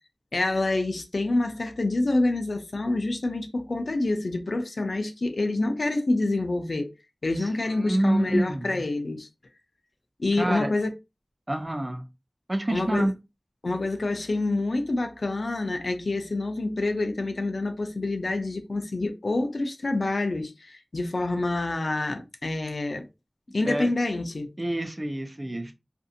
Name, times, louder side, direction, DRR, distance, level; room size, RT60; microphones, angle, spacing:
voice 1, 0.3-6.9 7.2-9.3 10.2-10.9 12.7-13.1 13.6-23.1 23.5-24.5, left 2 dB, 80° left, 0.5 m, -27 dB
voice 2, 7.8-8.7 10.4-10.7 11.5-12.0 12.5-13.2 23.6-23.9 24.6-25.7, right 1 dB, 30° right, 0.5 m, -27 dB
2.6 x 2.5 x 2.5 m
wide cardioid pair, 45°, 0 cm